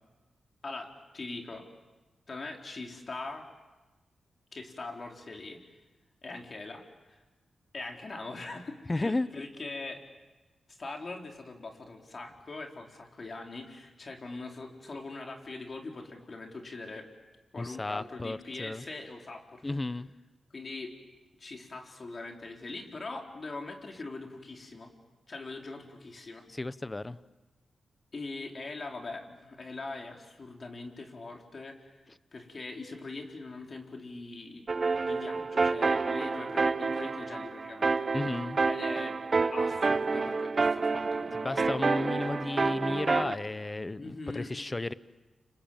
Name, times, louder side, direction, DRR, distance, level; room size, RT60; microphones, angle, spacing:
voice 1, 0.6-1.7 2.3-3.4 4.5-5.6 6.2-7.2 7.7-10.0 10.7-17.1 17.5-19.8 20.5-20.9 21.4-24.9 25.3-26.4 28.1-31.9 32.3-34.7 35.0-38.2 38.7-39.2 39.5-41.8 44.0-44.5, left 3 dB, 50° left, 2 dB, 4.3 m, -42 dB
voice 2, 8.9-9.3 17.6-18.8 19.6-20.1 26.5-27.2 38.1-38.6 41.4-44.9, left 2 dB, 25° left, 15 dB, 0.9 m, -33 dB
sound 1, 34.7-43.3, right 4 dB, 45° right, 1.0 m, -29 dB
30.0 x 26.5 x 7.4 m, 1.2 s
cardioid pair, 65°, 0 cm